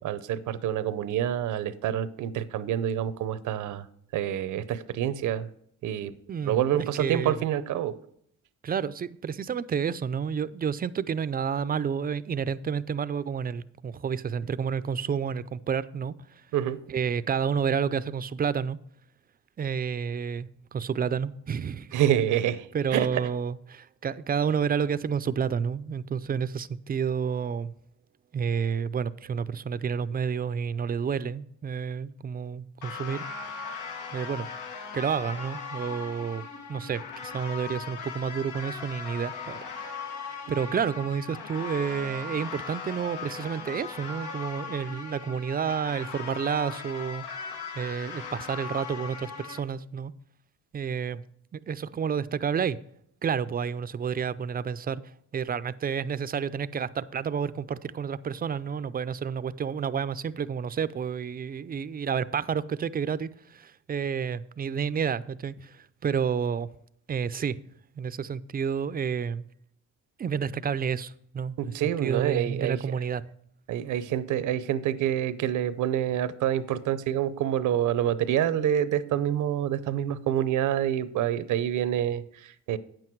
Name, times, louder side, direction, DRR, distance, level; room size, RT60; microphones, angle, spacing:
voice 1, 0.0-3.8 4.1-5.5 5.8-6.1 6.4-8.0 16.5-16.8 21.9-23.2 71.6-73.0 73.7-82.8, right 10 dB, 75° right, 0.7 m, -27 dB
voice 2, 6.3-7.4 8.6-16.1 16.9-18.8 19.6-22.0 22.7-27.7 28.3-33.3 34.1-34.5 34.9-36.4 36.7-39.6 40.5-47.3 47.8-50.1 50.7-51.2 51.5-52.8 53.2-55.0 55.3-66.7 67.1-67.6 68.0-69.5 70.2-71.6 72.0-73.2, right 7 dB, 30° right, 0.4 m, -30 dB
sound 1, 32.8-49.6, left 5 dB, 85° left, 1.4 m, -39 dB
9.1 x 7.8 x 4.6 m
cardioid pair, 90°, 30 cm